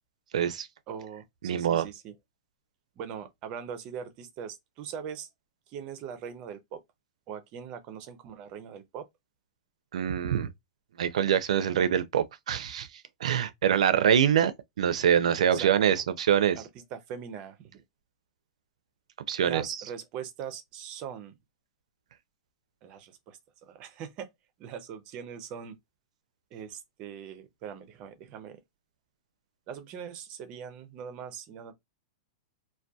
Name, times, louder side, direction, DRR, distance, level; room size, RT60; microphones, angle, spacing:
voice 1, 0.3-0.7 1.4-1.9 9.9-10.5 11.0-12.9 13.2-14.5 14.8-16.6 19.3-19.6, right 9 dB, 90° right, 0.4 m, -24 dB
voice 2, 0.9-2.1 3.0-5.3 5.7-6.8 7.3-9.1 15.5-16.0 16.6-17.8 19.5-21.3 22.8-24.3 24.6-25.8 26.5-28.6 29.7-31.7, right 7 dB, 30° right, 0.4 m, -41 dB
2.6 x 2.1 x 2.2 m
supercardioid pair, 170°, 3 cm